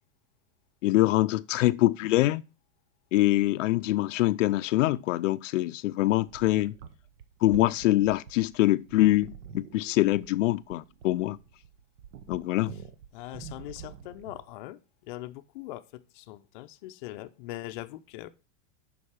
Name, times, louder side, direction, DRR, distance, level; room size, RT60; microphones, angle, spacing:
voice 1, 0.8-2.4 3.1-6.7 7.4-11.4 12.3-12.7, left 16 dB, 85° left, 0.5 m, -24 dB
sound 1, 6.3-14.5, right 8 dB, 70° right, 1.1 m, -47 dB
voice 2, 13.1-18.3, left 16 dB, 40° left, 0.6 m, -41 dB
7.2 x 5.4 x 4.8 m
supercardioid pair, 165°, 37 cm